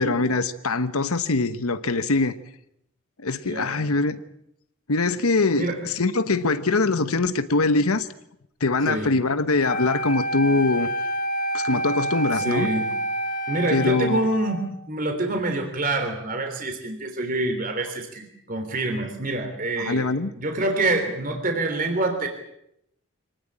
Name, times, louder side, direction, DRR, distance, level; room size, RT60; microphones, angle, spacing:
voice 1, 0.0-2.4 3.2-4.2 4.9-8.1 8.6-10.9 11.5-12.7 13.7-14.3 19.8-20.3, left 3 dB, 80° left, 1.1 m, -23 dB
voice 2, 3.5-4.1 5.6-5.8 8.9-9.1 12.4-12.8 13.5-20.1 20.4-22.3, right 2 dB, 40° right, 3.4 m, -26 dB
Wind instrument woodwind instrument, 9.6-14.7, right 1 dB, 40° left, 1.7 m, -28 dB
25.0 x 19.0 x 8.7 m
head